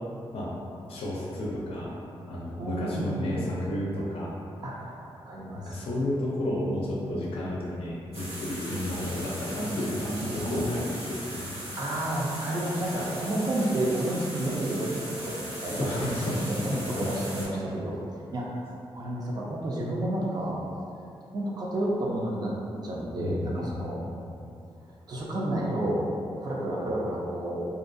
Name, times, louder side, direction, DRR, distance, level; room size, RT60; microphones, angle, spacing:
voice 1, 0.9-1.9 2.3-4.3 5.5-11.6 15.6-17.6 23.2-24.1, left 1 dB, 75° left, -5 dB, 0.5 m, -32 dB
voice 2, 2.6-3.5 4.6-5.7 9.6-10.8 11.7-16.6 17.0-18.0 18.3-18.6 18.9-20.6 21.3-22.5 22.8-24.0 25.1-27.7, right 1 dB, 45° right, -4 dB, 0.4 m, -31 dB
sound 1, 8.1-17.5, right 1 dB, 85° right, 1.1 m, -38 dB
2.5 x 2.2 x 2.5 m, 2.5 s
wide cardioid pair, 160°, 10 cm